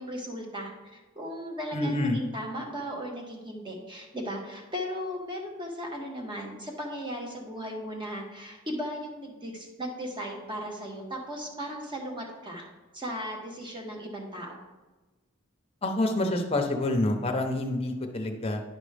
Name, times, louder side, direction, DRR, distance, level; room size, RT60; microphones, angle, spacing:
voice 1, 0.0-12.7 12.9-14.6, equal, 20° right, 1 dB, 1.3 m, -36 dB
voice 2, 1.7-2.2 15.8-18.6, left 1 dB, 30° left, 3 dB, 0.8 m, -27 dB
10.5 x 5.1 x 3.4 m, 1.2 s
head